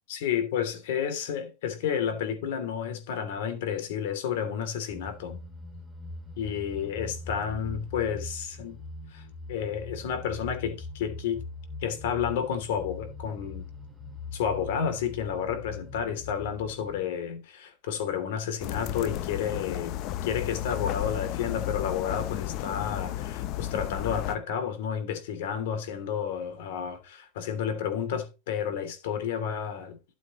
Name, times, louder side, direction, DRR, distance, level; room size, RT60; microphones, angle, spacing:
voice 1, 0.1-5.4 6.4-8.8 9.1-11.4 11.8-13.6 14.3-20.0 20.2-30.0, left 8 dB, 70° left, 2.9 m, -31 dB
sound 1, 4.9-17.0, left 3 dB, 5° left, 2.4 m, -42 dB
sound 2, 18.6-24.4, left 13 dB, 40° left, 0.6 m, -33 dB
13.0 x 7.5 x 3.1 m
supercardioid pair, 150°, 0 cm